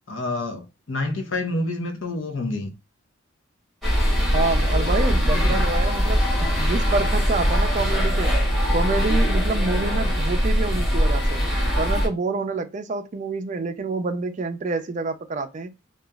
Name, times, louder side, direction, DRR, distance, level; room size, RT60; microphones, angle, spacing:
voice 1, 0.1-2.7 5.3-5.6 9.9-10.1, left 2 dB, 70° left, 0.7 m, -28 dB
sound 1, 3.8-12.1, equal, ahead, 1.2 m, -21 dB
voice 2, 4.3-8.4 8.7-11.4 11.7-15.7, right 3 dB, 40° right, 0.4 m, -27 dB
2.9 x 2.4 x 2.2 m
head